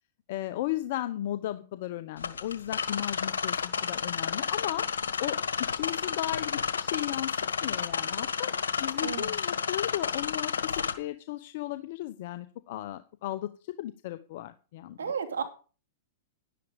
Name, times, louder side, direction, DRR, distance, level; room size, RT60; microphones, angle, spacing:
voice 1, 0.3-4.9 5.2-5.3 5.7-7.3 7.6-8.5 8.8-15.1, left 14 dB, 60° left, 11 dB, 0.9 m, -35 dB
sound 1, 2.2-10.9, left 6 dB, 90° left, 1.4 m, -31 dB
voice 2, 9.0-9.3 15.0-15.4, right 6 dB, 90° right, 7 dB, 2.7 m, -32 dB
11.5 x 10.5 x 5.2 m, 0.37 s
hypercardioid pair, 120°, 0 cm